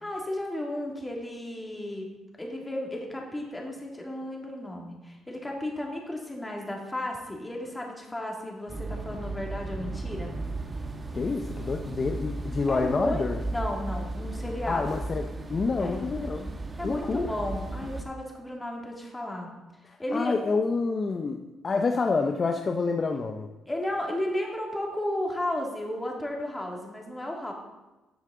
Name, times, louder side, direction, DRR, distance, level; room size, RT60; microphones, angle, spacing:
voice 1, 0.0-2.1 2.4-10.3 12.7-14.8 15.8-16.0 16.8-19.5 20.0-20.3 23.7-27.5, left 1 dB, 15° left, 0 dB, 2.3 m, -33 dB
sound 1, 8.7-18.0, right 2 dB, 30° right, 1.1 m, -35 dB
voice 2, 11.1-13.4 14.7-16.5 16.8-17.3 19.8-23.5, left 4 dB, 40° left, 5 dB, 0.6 m, -28 dB
12.5 x 7.3 x 3.8 m, 1.1 s
cardioid pair, 90°, 0 cm